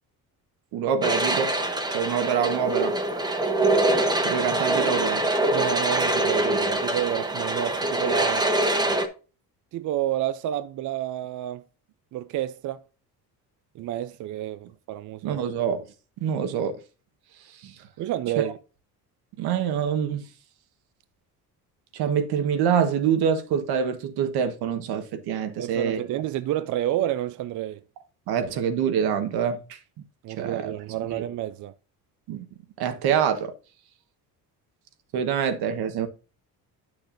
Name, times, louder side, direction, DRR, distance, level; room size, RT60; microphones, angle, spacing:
voice 1, 0.7-1.6 1.9-3.0 4.2-5.3 15.2-15.8 16.2-16.8 17.6-17.7 18.4-18.5 19.4-20.3 21.9-26.0 28.3-29.8 30.3-30.8 31.1-31.2 32.3-32.5 32.8-33.5 35.1-36.1, right 7 dB, 80° right, 1.4 m, -25 dB
sound 1, 1.0-9.1, right 1 dB, 10° right, 1.0 m, -24 dB
voice 2, 5.5-8.5 9.7-11.6 12.1-12.8 13.7-15.4 18.0-18.6 25.6-27.8 30.2-31.7, right 12 dB, 55° right, 0.5 m, -29 dB
9.9 x 6.6 x 2.6 m
cardioid pair, 155°, 38 cm